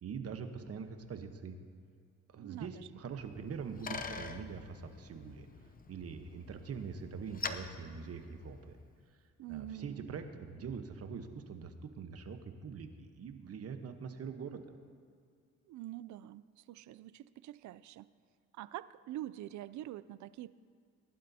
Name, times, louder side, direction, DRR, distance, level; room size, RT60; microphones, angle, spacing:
voice 1, 0.0-1.6 2.3-5.5 5.9-8.8 9.5-14.6, right 6 dB, 55° right, 7 dB, 1.1 m, -43 dB
voice 2, 2.4-2.9 9.4-10.1 15.7-18.1 18.5-20.5, right 13 dB, 70° right, 17 dB, 0.5 m, -45 dB
Bicycle, 3.2-8.9, left 4 dB, 30° left, 0.7 m, -46 dB
20.0 x 11.5 x 2.8 m, 2.3 s
cardioid pair, 90°, 30 cm